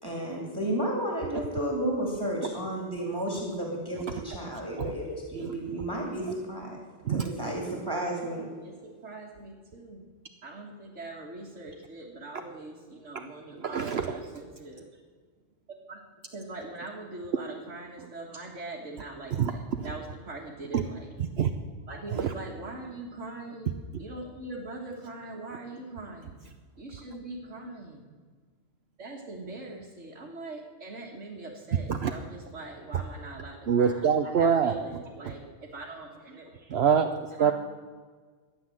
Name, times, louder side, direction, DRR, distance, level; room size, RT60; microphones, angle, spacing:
voice 1, 0.0-6.8 7.1-8.5, right 1 dB, 20° right, -1 dB, 2.4 m, -32 dB
voice 2, 7.0-7.5 13.1-13.3 13.6-14.2 19.4-19.9 20.7-20.9 21.4-21.5 22.1-22.3 31.9-32.1 33.7-34.7 35.2-35.3 36.7-37.5, right 7 dB, 60° right, 7 dB, 0.9 m, -26 dB
voice 3, 8.6-10.0 10.4-14.9 15.9-16.0 16.3-21.1 21.9-23.7 24.0-26.4 26.8-28.0 29.0-36.8 37.4-37.5, right 2 dB, 80° right, -4 dB, 2.1 m, -42 dB
13.5 x 9.8 x 7.7 m, 1.5 s
omnidirectional pair, 1.2 m